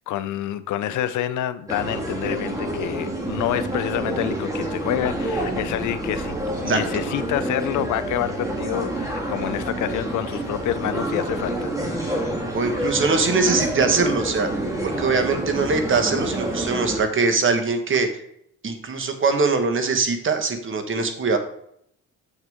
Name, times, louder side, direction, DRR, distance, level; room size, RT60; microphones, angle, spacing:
voice 1, 0.1-12.4, left 12 dB, 75° left, 13 dB, 0.6 m, -28 dB
sound 1, 1.7-17.0, right 1 dB, 10° right, 1.8 m, -28 dB
voice 2, 12.5-14.5 14.8-18.2 18.6-21.4, right 4 dB, 40° right, 6 dB, 1.3 m, -22 dB
7.2 x 6.5 x 3.5 m, 0.71 s
cardioid pair, 90°, 30 cm